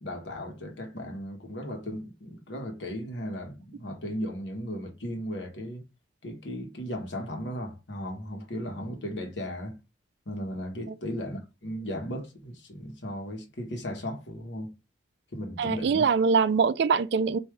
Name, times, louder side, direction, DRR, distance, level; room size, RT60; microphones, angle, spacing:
voice 1, 0.0-5.8 6.2-9.8 10.3-14.7 15.3-16.0, equal, 75° left, 1.1 m, -36 dB
voice 2, 15.6-17.4, right 5 dB, 65° right, 0.3 m, -23 dB
4.8 x 2.6 x 3.2 m
head